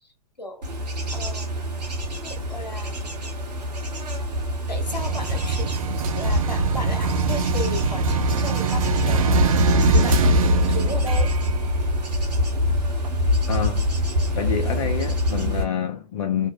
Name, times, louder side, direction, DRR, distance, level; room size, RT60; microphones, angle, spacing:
voice 1, 0.4-0.7 1.1-1.7 2.1-3.1 4.7-5.8 6.1-9.4 9.9-11.3, left 1 dB, 85° left, 0.8 m, -35 dB
Bird / Insect / Wind, 0.6-15.6, left 1 dB, 75° right, 1.0 m, -24 dB
sound 1, 4.9-12.8, right 9 dB, 55° right, 0.5 m, -26 dB
voice 2, 13.5-14.0 14.3-16.5, left 7 dB, 50° left, 0.6 m, -27 dB
2.6 x 2.0 x 2.7 m
figure-of-eight pair, 105°, 21 cm